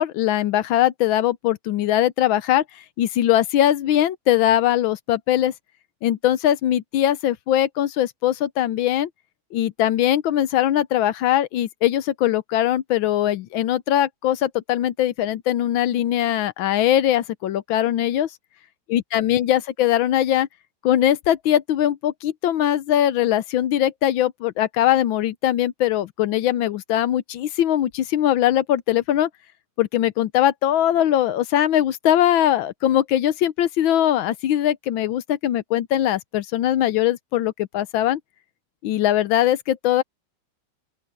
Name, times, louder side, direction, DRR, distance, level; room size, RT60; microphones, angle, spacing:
voice 1, 0.0-2.6 3.0-5.5 6.0-9.1 9.5-18.3 18.9-20.5 20.8-29.3 29.8-38.2 38.8-40.0, left 12 dB, 75° left, 1.4 m, -21 dB
open air
omnidirectional pair, 2.3 m